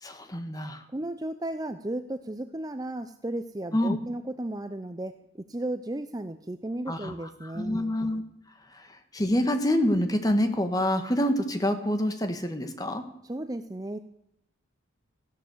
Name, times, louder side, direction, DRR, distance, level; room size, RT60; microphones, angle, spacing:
voice 1, 0.0-0.8 3.7-4.0 6.9-7.1 7.4-8.2 8.7-8.9 9.1-13.0, left 1 dB, 20° left, 7 dB, 1.5 m, -26 dB
voice 2, 0.9-5.2 5.5-7.8 13.2-14.0, right 1 dB, 20° right, 9 dB, 0.5 m, -34 dB
15.0 x 11.5 x 7.9 m, 0.78 s
head